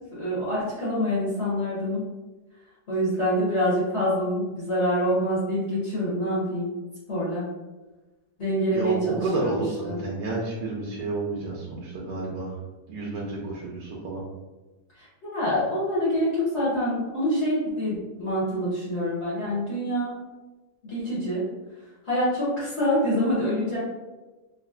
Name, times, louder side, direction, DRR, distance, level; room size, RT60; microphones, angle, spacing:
voice 1, 0.1-2.0 2.9-6.7 7.1-7.4 8.4-9.5 9.8-10.0 15.0-20.1 20.8-21.4 22.0-23.8, equal, 45° left, -9 dB, 1.1 m, -26 dB
voice 2, 8.7-12.6 12.9-14.2, right 3 dB, 85° right, -5 dB, 1.2 m, -30 dB
3.9 x 2.1 x 2.3 m, 1.2 s
omnidirectional pair, 1.8 m